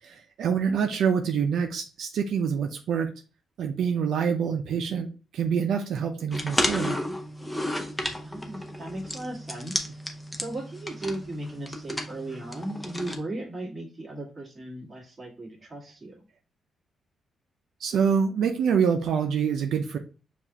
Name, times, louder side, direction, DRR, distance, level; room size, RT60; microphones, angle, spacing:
voice 1, 0.0-3.1 3.6-7.0 17.8-20.0, right 7 dB, 75° right, 4 dB, 0.5 m, -26 dB
sound 1, 6.3-13.2, left 1 dB, 10° left, 0.7 m, -32 dB
voice 2, 8.2-9.8 10.4-16.2, right 1 dB, 25° right, -3 dB, 1.7 m, -37 dB
6.9 x 2.5 x 2.8 m, 0.34 s
cardioid pair, 120°, 0 cm